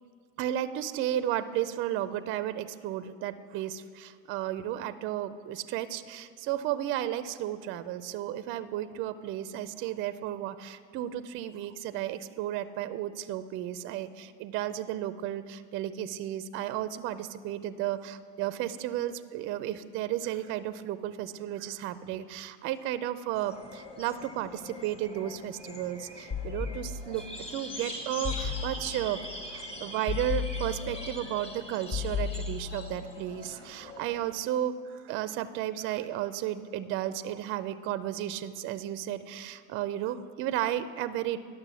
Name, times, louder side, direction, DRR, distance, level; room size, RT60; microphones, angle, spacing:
voice 1, 0.4-27.3 27.5-29.2 29.5-41.4, right 12 dB, 35° right, 13 dB, 0.4 m, -33 dB
sound 1, 23.3-34.4, left 1 dB, 15° left, 1.1 m, -43 dB
sound 2, 26.3-27.3 28.2-29.1 30.1-31.2 31.9-33.0, left 6 dB, 35° left, 1.0 m, -34 dB
10.5 x 6.3 x 6.2 m, 2.1 s
hypercardioid pair, 105°, 40 cm